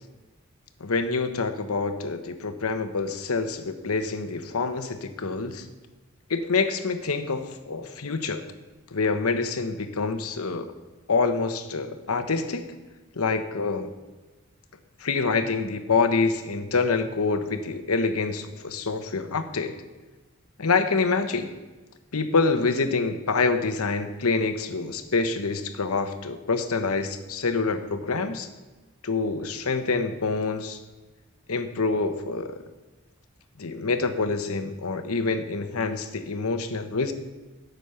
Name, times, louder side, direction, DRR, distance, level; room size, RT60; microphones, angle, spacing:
voice 1, 0.8-5.7 6.3-8.4 8.9-10.7 11.1-12.7 13.1-13.9 15.0-19.8 20.6-21.5 22.1-28.5 29.0-30.8 31.5-32.6 33.6-37.1, left 4 dB, 90° left, 8 dB, 0.9 m, -26 dB
9.1 x 8.2 x 5.6 m, 1.2 s
head